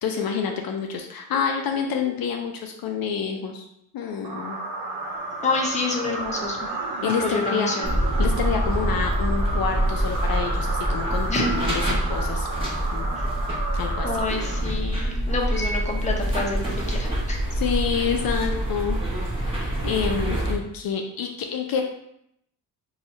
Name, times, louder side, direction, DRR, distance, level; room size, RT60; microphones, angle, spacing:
voice 1, 0.0-3.6 3.9-4.6 7.0-7.9 8.2-12.5 12.9-13.1 13.7-14.2 17.5-19.0 19.4-21.8, left 6 dB, 60° left, 3 dB, 0.5 m, -28 dB
sound 1, 4.2-15.0, right 2 dB, 60° right, 0.7 m, -32 dB
voice 2, 5.4-6.6 7.2-7.9 11.3-11.5 13.2-13.3 14.0-17.4, left 3 dB, 20° left, 0 dB, 0.6 m, -28 dB
sound 2, 7.8-20.5, right 1 dB, 15° right, 1.1 m, -26 dB
2.7 x 2.4 x 4.1 m, 0.76 s
cardioid pair, 100°, 40 cm